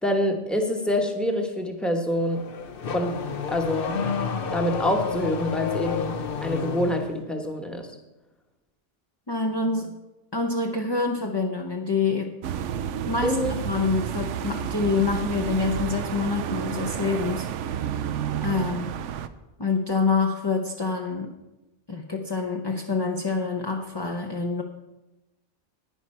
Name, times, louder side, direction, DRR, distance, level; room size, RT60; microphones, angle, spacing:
voice 1, 0.0-2.4 2.9-3.2 3.5-4.0 4.5-6.1 6.4-7.9 13.2-13.5, left 1 dB, ahead, 3 dB, 1.0 m, -26 dB
Car / Accelerating revving vroom, 2.1-7.1, left 6 dB, 55° left, 0.9 m, -30 dB
voice 2, 9.3-9.9 10.3-12.3 13.1-17.5 18.4-18.9 19.6-21.3 21.9-24.6, left 4 dB, 25° left, 2 dB, 0.6 m, -26 dB
sound 1, 12.4-19.3, right 9 dB, 90° right, 0.9 m, -30 dB
11.0 x 9.7 x 4.4 m, 1.0 s
omnidirectional pair, 1.2 m